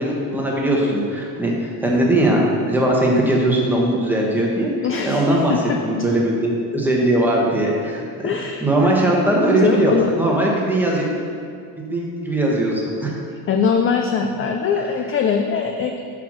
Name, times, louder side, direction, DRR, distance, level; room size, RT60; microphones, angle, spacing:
voice 1, 0.0-4.7 5.1-5.5 5.8-8.3 8.6-11.1 11.8-13.1, right 1 dB, 5° right, -3 dB, 1.2 m, -19 dB
voice 2, 4.8-5.8 8.2-10.1 13.5-16.0, left 6 dB, 30° left, 4 dB, 0.4 m, -22 dB
8.0 x 4.9 x 6.2 m, 2.4 s
cardioid pair, 145°, 43 cm